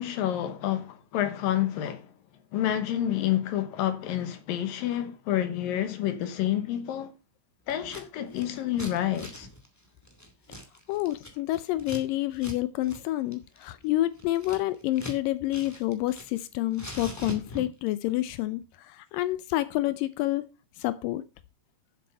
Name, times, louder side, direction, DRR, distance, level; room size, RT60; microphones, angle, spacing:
voice 1, 0.0-2.1 2.5-7.1 7.7-9.5, left 11 dB, 70° left, 2.5 m, -29 dB
Scissors, 7.7-8.0 8.3-12.0 12.3-12.6 12.8-13.0 13.3-15.2 15.5-16.4 16.7-17.9, equal, 10° left, 0.7 m, -42 dB
voice 2, 10.9-20.4 20.8-21.2, left 16 dB, 90° left, 1.9 m, -28 dB
9.6 x 7.7 x 5.4 m
omnidirectional pair, 4.8 m